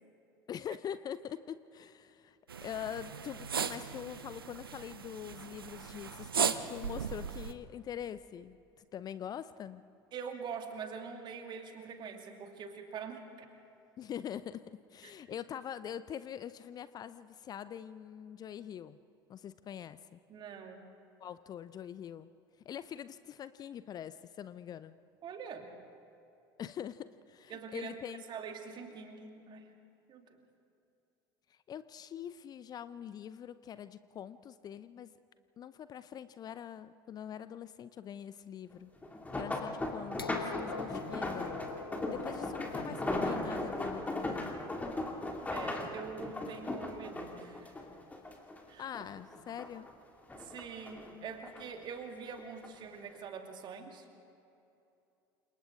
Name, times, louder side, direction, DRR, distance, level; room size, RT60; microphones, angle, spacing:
voice 1, 0.5-9.8 14.0-19.0 19.3-20.2 21.2-22.3 22.6-25.0 26.6-28.2 31.5-35.1 35.6-38.9 39.3-41.6 42.1-44.5 48.8-49.9, left 9 dB, 35° left, 15 dB, 0.6 m, -44 dB
sound 1, 2.5-7.5, right 7 dB, 80° right, 0.8 m, -37 dB
voice 2, 10.1-13.5 15.0-15.1 20.3-20.9 25.2-25.8 27.5-28.0 28.3-29.7 30.1-30.4 45.5-47.7 48.7-49.1 50.3-54.0, right 6 dB, 40° right, 4 dB, 2.5 m, -44 dB
sound 2, 39.0-48.6 48.9-49.9 50.3-51.6 52.4-52.7 53.1-53.2, left 2 dB, 10° left, 2.6 m, -37 dB
sound 3, 40.2-46.1 47.2-47.3, left 4 dB, 85° left, 0.5 m, -47 dB
29.0 x 27.5 x 3.8 m, 2.8 s
figure-of-eight pair, 65°, 12 cm